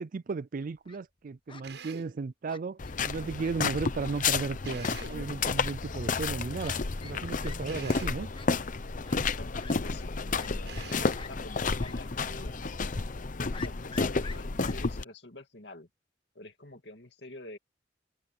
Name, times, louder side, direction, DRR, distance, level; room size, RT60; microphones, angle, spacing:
voice 1, 0.0-2.8 3.0-6.8 7.0-8.3, right 4 dB, 50° right, 0.4 m, -35 dB
Fowl, 0.6-1.0 1.5-1.6 2.5-3.0 3.4-3.5 3.8-3.9 4.2-4.3 4.7-4.9 5.6-5.7 6.6-6.8 7.0-7.2 7.4-7.6 7.8-8.0 8.3-8.5 9.0-9.2 9.6-9.7 10.3-10.9 11.1-11.3 11.8-11.9 12.3-12.4 13.5-14.7, left 5 dB, 30° left, 1.1 m, -47 dB
Drill, 1.6-2.2 4.6-5.3 7.7-8.3 10.7-11.3, right 5 dB, 80° right, 6.6 m, -45 dB
sound 1, 2.8-15.0, left 4 dB, 45° left, 0.8 m, -31 dB
voice 2, 9.2-12.5 13.4-15.9 16.3-17.6, left 2 dB, 70° left, 2.5 m, -47 dB
head